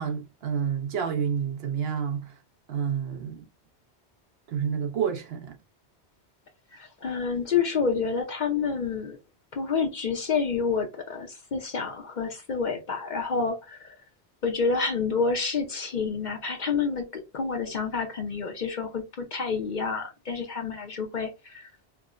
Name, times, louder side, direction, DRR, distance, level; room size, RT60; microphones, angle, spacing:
voice 1, 0.0-2.4 2.7-3.4 4.5-5.6, right 7 dB, 70° right, 0.9 m, -29 dB
voice 2, 6.7-9.2 9.5-14.0 14.4-21.7, left 5 dB, 50° left, 0.7 m, -29 dB
4.5 x 2.1 x 2.4 m
omnidirectional pair, 1.1 m